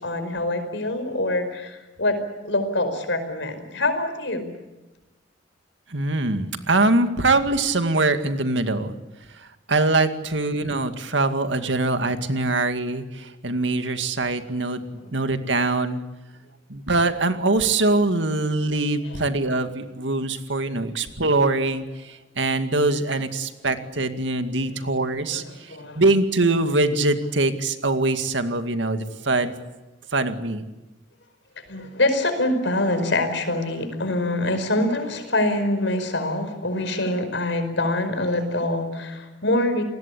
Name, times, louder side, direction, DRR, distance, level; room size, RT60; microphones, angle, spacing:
voice 1, 0.0-2.2 2.4-4.5 15.0-15.2 19.0-19.2 20.8-20.9 25.2-26.0 31.7-39.8, left 1 dB, 75° left, 9 dB, 5.0 m, -25 dB
voice 2, 5.9-9.0 9.4-14.8 15.1-16.0 16.7-29.5 30.1-30.7, right 2 dB, 75° right, 8 dB, 2.2 m, -23 dB
29.0 x 20.0 x 8.5 m, 1.0 s
head